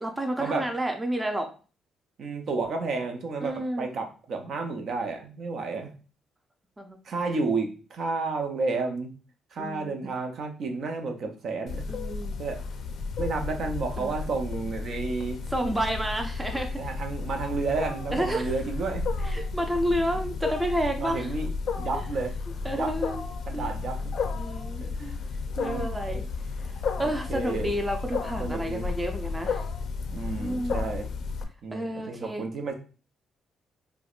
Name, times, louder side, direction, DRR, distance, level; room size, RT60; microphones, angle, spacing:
voice 1, 0.0-1.5 3.4-3.9 6.8-7.0 9.6-10.1 11.9-12.4 14.0-14.1 15.5-16.8 18.1-18.5 19.2-21.3 22.6-23.2 23.5-23.7 24.3-24.9 25.6-26.2 27.0-29.6 30.4-30.8 31.7-32.5, right 1 dB, 15° right, 4 dB, 0.5 m, -30 dB
voice 2, 2.2-5.9 7.0-9.1 9.5-11.8 12.4-12.6 13.2-15.4 16.8-19.0 20.9-21.5 21.8-22.3 22.7-23.0 23.5-24.1 24.8-25.2 25.6-26.3 27.0-27.7 28.4-28.9 30.1-31.1 31.6-32.7, right 4 dB, 60° right, 4 dB, 0.6 m, -31 dB
Wild animals, 11.7-31.4, left 4 dB, 65° left, 0.5 m, -33 dB
4.6 x 2.1 x 2.4 m, 0.36 s
cardioid pair, 90°, 0 cm